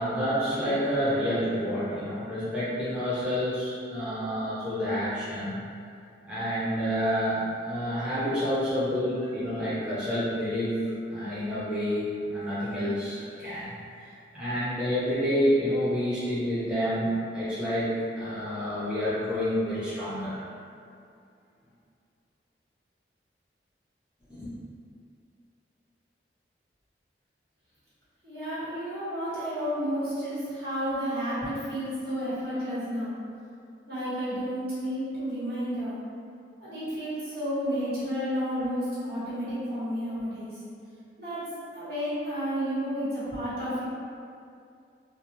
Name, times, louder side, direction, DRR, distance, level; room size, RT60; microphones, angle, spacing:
voice 1, 0.0-5.6 6.2-10.7 11.1-13.7 13.9-20.4 24.3-24.5, equal, 5° right, -13 dB, 0.5 m, -28 dB
voice 2, 28.2-33.1 33.9-36.0 36.6-40.6 41.2-41.5 41.7-43.8, equal, 65° right, -12 dB, 1.2 m, -31 dB
2.3 x 2.2 x 2.9 m, 2.4 s
head